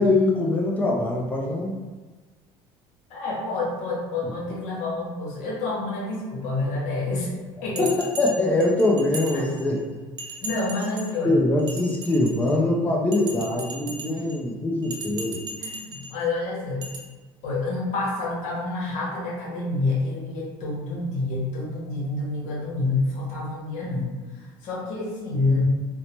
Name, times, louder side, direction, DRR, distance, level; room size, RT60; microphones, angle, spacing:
voice 1, 0.0-1.7 7.8-9.8 11.2-15.5, left 2 dB, 10° left, -2 dB, 0.4 m, -23 dB
voice 2, 3.1-7.3 7.6-7.9 9.3-9.5 10.4-11.4 14.1-14.2 15.6-16.9 17.4-25.7, left 2 dB, 70° left, -4 dB, 1.0 m, -28 dB
Bell, 7.8-9.8 10.2-11.2 11.6-12.6 13.1-14.4 14.8-16.2 16.8-17.0, right 2 dB, 35° right, 0.6 m, -37 dB
2.8 x 2.1 x 2.8 m, 1.3 s
supercardioid pair, 110°, 12 cm